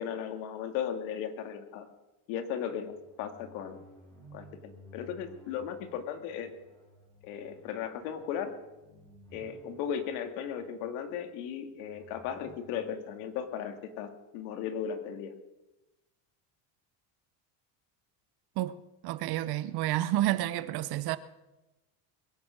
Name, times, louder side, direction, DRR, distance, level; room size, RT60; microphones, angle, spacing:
voice 1, 0.0-1.9 2.3-3.8 4.3-6.5 7.2-8.5 9.3-15.3, left 8 dB, 85° left, 2.2 m, -36 dB
sound 1, 2.7-14.3, equal, 5° left, 4.9 m, -56 dB
voice 2, 19.0-21.2, right 14 dB, 55° right, 0.9 m, -30 dB
22.0 x 9.3 x 6.3 m
cardioid pair, 145°, 46 cm